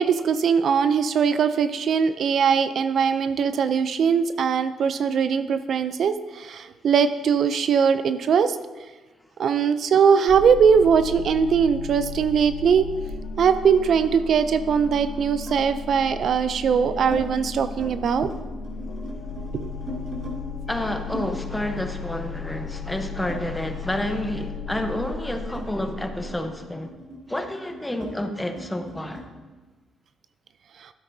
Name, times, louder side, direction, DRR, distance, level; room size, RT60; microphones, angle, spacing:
voice 1, 0.0-8.6 9.4-12.9 13.4-18.3 19.5-19.7, right 6 dB, 60° right, 0.4 m, -21 dB
sound 1, 10.3-26.3, left 5 dB, 75° left, 0.8 m, -35 dB
sound 2, 12.6-14.2 15.5-15.7 16.4-17.2 17.6-17.9 18.2-20.4 21.1-24.0 24.3-29.3, right 1 dB, 45° right, 2.6 m, -40 dB
voice 2, 20.7-26.9 27.3-29.2, left 1 dB, 10° left, 0.9 m, -29 dB
12.5 x 8.3 x 2.7 m
cardioid pair, 90°, 0 cm